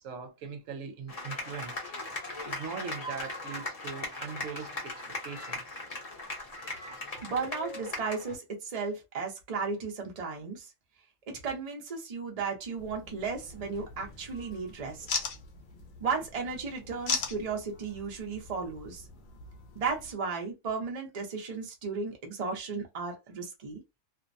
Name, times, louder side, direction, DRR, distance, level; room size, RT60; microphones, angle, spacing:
voice 1, 0.0-1.8 2.4-5.8, right 6 dB, 75° right, 1.0 m, -41 dB
sound 1, 1.1-8.4, left 2 dB, 30° left, 0.8 m, -39 dB
voice 2, 7.2-10.7 11.3-15.1 16.0-19.0 19.7-23.8, right 4 dB, 35° right, 0.6 m, -35 dB
sound 2, 12.8-20.1, left 5 dB, 60° left, 0.5 m, -40 dB
2.6 x 2.1 x 2.5 m
omnidirectional pair, 1.4 m